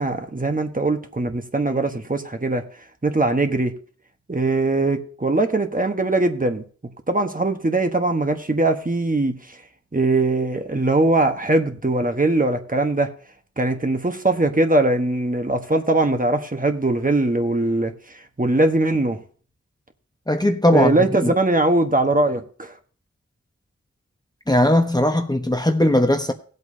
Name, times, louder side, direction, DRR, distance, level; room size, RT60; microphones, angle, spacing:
voice 1, 0.0-2.6 3.0-3.7 4.3-6.6 7.1-9.6 9.9-13.1 13.6-19.2 20.7-22.7, right 2 dB, 30° right, 1.1 m, -21 dB
voice 2, 20.3-21.0 21.2-21.3 24.5-26.3, left 1 dB, 15° left, 1.0 m, -18 dB
17.0 x 8.0 x 2.7 m
wide cardioid pair, 50°, 29 cm